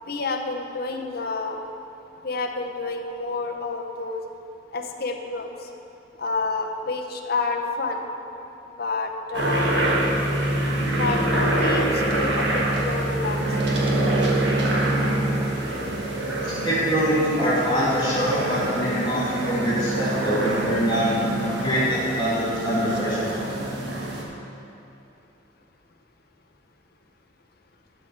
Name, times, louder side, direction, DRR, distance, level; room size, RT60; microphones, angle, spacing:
voice 1, 0.1-1.6 2.2-4.2 4.7-5.5 6.2-8.0 8.8-9.7 11.0-13.4, left 3 dB, 55° left, 3 dB, 0.8 m, -29 dB
sound 1, 9.3-24.2, right 1 dB, 65° right, 1.5 m, -25 dB
voice 2, 16.4-21.1 21.6-23.4, equal, 25° left, -13 dB, 2.2 m, -24 dB
11.5 x 4.7 x 6.5 m, 2.9 s
head